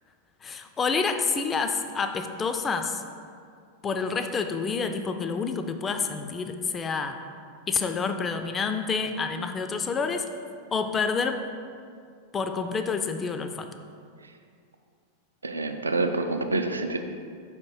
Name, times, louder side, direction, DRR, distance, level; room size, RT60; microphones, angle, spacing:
voice 1, 0.4-3.0 3.8-7.2 7.7-10.2 10.7-11.4 12.3-13.7, left 5 dB, 20° left, 7 dB, 0.3 m, -28 dB
voice 2, 15.4-17.0, right 3 dB, 75° right, 6 dB, 0.4 m, -27 dB
5.1 x 3.5 x 5.5 m, 2.2 s
figure-of-eight pair, 90°, 0 cm